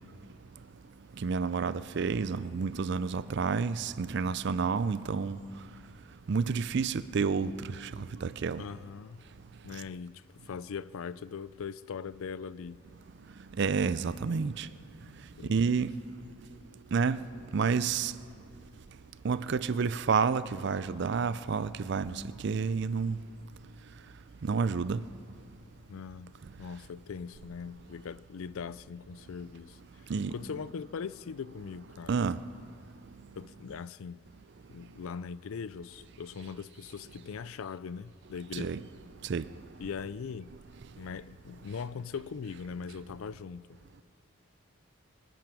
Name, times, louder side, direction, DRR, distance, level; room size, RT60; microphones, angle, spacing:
voice 1, 1.2-5.4 6.3-7.5 7.8-8.6 13.6-14.7 15.5-15.9 16.9-17.2 17.5-18.1 19.2-23.2 24.4-25.0 30.1-30.3 32.1-32.4 38.5-38.8 39.3-39.4, right 5 dB, 50° right, 0.4 m, -29 dB
voice 2, 8.6-9.2 9.6-12.8 15.4-15.7 25.9-32.2 33.4-34.3 34.7-38.9 39.8-40.5 41.0-43.8, left 6 dB, 70° left, 0.4 m, -41 dB
24.0 x 9.1 x 6.2 m
head